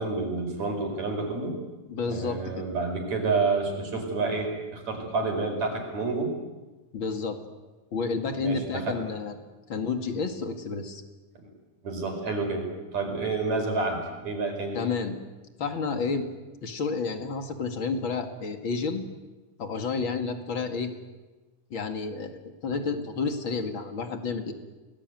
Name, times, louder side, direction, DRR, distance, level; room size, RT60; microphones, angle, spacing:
voice 1, 0.0-1.6 2.1-6.4 8.4-9.0 10.8-10.9 11.4-11.5 11.8-14.8, right 3 dB, 60° right, 4 dB, 6.2 m, -29 dB
voice 2, 1.9-2.7 6.9-7.4 7.9-9.4 9.7-11.0 14.7-15.2 15.6-16.3 16.6-19.0 19.6-20.9 21.7-24.5, left 4 dB, 40° left, 6 dB, 2.7 m, -30 dB
29.5 x 20.0 x 9.3 m, 1.2 s
omnidirectional pair, 3.7 m